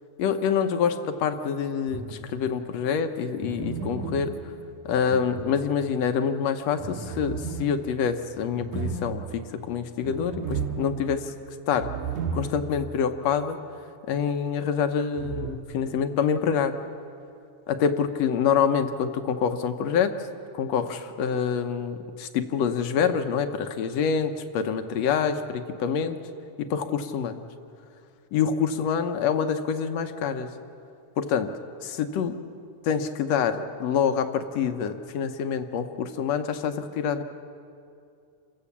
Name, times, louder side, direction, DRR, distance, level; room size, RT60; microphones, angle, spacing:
voice 1, 0.2-4.3 4.9-11.3 11.7-11.9 12.3-13.6 14.1-16.8 17.7-20.3 20.5-26.2 26.6-27.4 28.3-30.5 31.2-31.5 31.8-32.4 32.8-37.2, left 7 dB, 70° left, 8 dB, 1.9 m, -26 dB
sound 1, 1.9-2.6 3.4-6.1 6.8-13.0 13.3-13.4 15.2-15.6, right 5 dB, 90° right, 2.7 m, -35 dB
28.0 x 15.5 x 7.2 m, 2.5 s
omnidirectional pair, 3.5 m